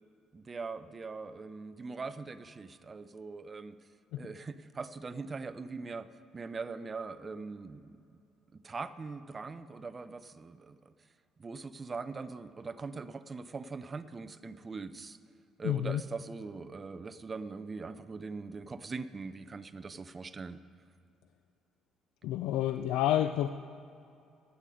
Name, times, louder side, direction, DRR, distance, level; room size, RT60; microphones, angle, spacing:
voice 1, 0.3-3.8 4.2-6.1 6.3-8.0 8.5-10.9 11.4-15.2 15.6-20.6, right 4 dB, 20° right, 12 dB, 0.4 m, -41 dB
voice 2, 15.6-16.0 22.2-23.5, left 12 dB, 85° left, 9 dB, 0.4 m, -29 dB
15.5 x 9.1 x 5.0 m, 2.5 s
cardioid pair, 165°, 0 cm